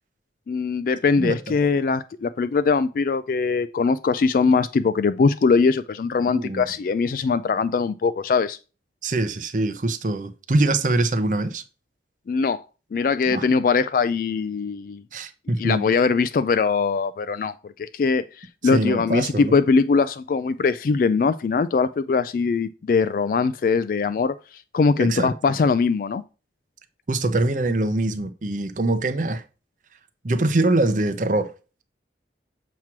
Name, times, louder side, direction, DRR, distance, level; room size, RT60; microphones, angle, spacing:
voice 1, 0.5-8.6 12.3-12.6 12.9-15.0 15.6-24.3 24.7-26.2, left 4 dB, 50° left, 0.3 m, -21 dB
voice 2, 6.3-6.6 9.0-11.6 13.3-13.5 15.1-15.9 18.7-19.5 25.0-25.3 27.1-29.4 30.2-31.5, right 2 dB, 45° right, 0.7 m, -23 dB
7.3 x 3.0 x 5.8 m
head